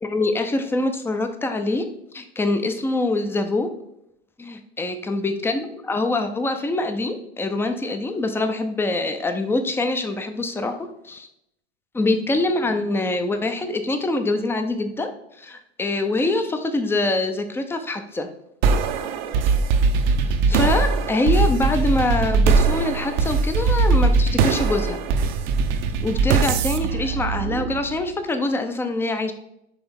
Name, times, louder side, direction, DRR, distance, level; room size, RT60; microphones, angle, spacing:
voice 1, 0.0-1.9 2.1-3.7 4.4-10.8 11.0-11.3 11.9-15.1 15.4-18.3 20.5-25.0 26.0-29.3, left 2 dB, 5° left, 7 dB, 0.6 m, -24 dB
sound 1, 18.6-28.1, right 4 dB, 45° right, 0.7 m, -21 dB
9.7 x 3.4 x 3.6 m, 0.79 s
figure-of-eight pair, 90°, 32 cm